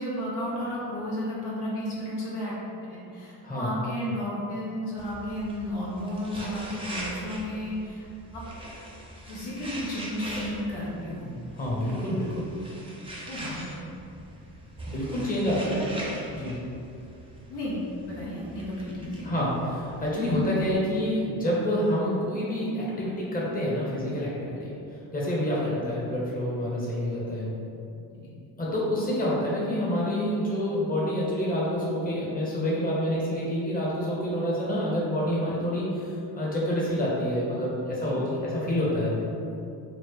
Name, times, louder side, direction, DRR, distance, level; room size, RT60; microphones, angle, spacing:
voice 1, 0.0-2.5 2.8-8.1 8.3-8.4 9.3-11.4 11.9-12.0 13.3-13.7 15.7-15.9 17.5-17.8 18.1-19.2 25.6-25.7 28.1-28.3 38.0-38.5, left 1 dB, 55° left, -7 dB, 1.1 m, -33 dB
voice 2, 3.4-3.8 11.5-12.5 14.9-15.8 16.3-16.6 19.2-24.7 25.1-27.5 28.6-39.3, equal, 15° left, -6 dB, 1.1 m, -27 dB
sound 1, 5.0-20.8, right 1 dB, 10° right, 0.7 m, -42 dB
4.3 x 2.1 x 3.2 m, 2.6 s
hypercardioid pair, 55°, 48 cm